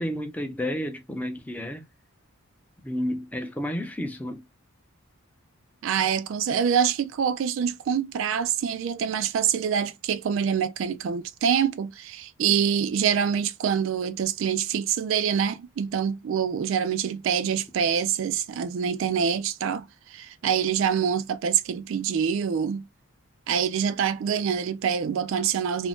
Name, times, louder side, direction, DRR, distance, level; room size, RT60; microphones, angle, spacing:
voice 1, 0.0-1.8 2.8-4.4, equal, 5° left, 0.4 m, -31 dB
voice 2, 5.8-22.8 23.5-25.9, right 7 dB, 65° right, 0.3 m, -25 dB
2.5 x 2.1 x 3.4 m
head